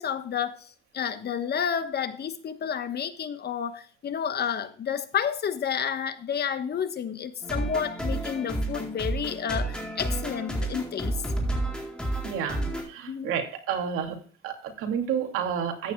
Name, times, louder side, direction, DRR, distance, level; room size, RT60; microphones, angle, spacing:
voice 1, 0.0-11.2 13.1-13.3, left 8 dB, 50° left, 11 dB, 1.2 m, -30 dB
sound 1, 7.4-12.8, right 1 dB, 5° left, 4.1 m, -30 dB
voice 2, 12.2-14.2 14.4-15.9, right 7 dB, 90° right, 4 dB, 2.6 m, -30 dB
14.5 x 9.5 x 2.3 m, 0.42 s
cardioid pair, 110°, 21 cm